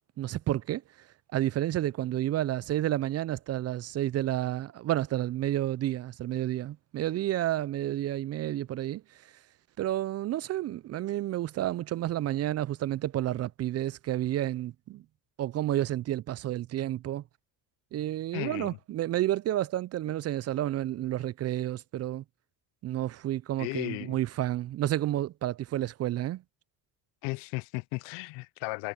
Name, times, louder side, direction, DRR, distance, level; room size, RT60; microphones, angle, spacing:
voice 1, 0.2-1.1 1.3-9.3 9.8-15.0 15.4-17.2 17.9-22.2 22.8-26.4, right 13 dB, 40° right, 0.4 m, -30 dB
voice 2, 18.3-18.8 23.6-24.2 27.2-28.9, left 26 dB, 80° left, 0.7 m, -35 dB
supercardioid pair, 100°, 43 cm